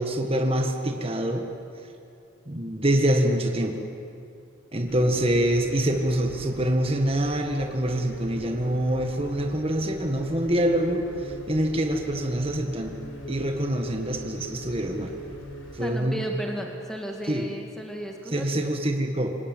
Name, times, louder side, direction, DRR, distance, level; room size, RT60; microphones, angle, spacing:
voice 1, 0.0-1.4 2.5-3.8 4.7-13.0 13.3-15.1 15.7-16.2 17.3-17.5 18.3-19.4, right 1 dB, 30° right, 3 dB, 1.7 m, -25 dB
sound 1, 4.9-15.8, right 1 dB, 70° left, 4.4 m, -41 dB
voice 2, 4.9-5.5 15.8-18.7, right 1 dB, ahead, 1 dB, 2.0 m, -35 dB
25.5 x 19.0 x 9.2 m, 2.5 s
head